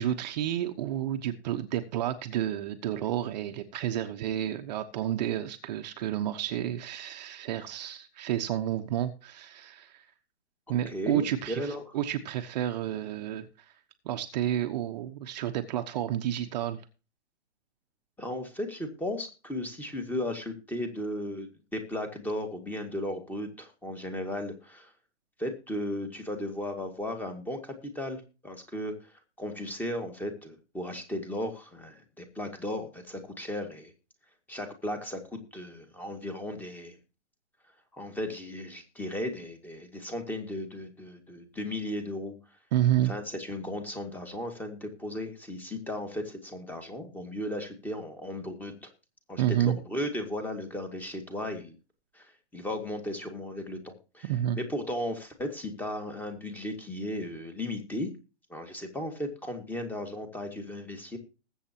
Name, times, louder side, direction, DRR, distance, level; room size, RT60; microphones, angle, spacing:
voice 1, 0.0-10.0 10.7-13.7 14.0-16.8 42.7-43.1 49.4-49.8 54.2-54.6, right 11 dB, 35° right, 7 dB, 1.1 m, -30 dB
voice 2, 10.9-11.9 18.2-24.9 25.4-33.9 34.5-37.0 37.9-42.3 43.1-48.9 49.3-51.8 52.1-54.3 54.5-58.1 58.5-61.2, left 1 dB, 5° left, 6 dB, 2.0 m, -36 dB
20.0 x 8.2 x 2.9 m, 0.32 s
hypercardioid pair, 145°, 35 cm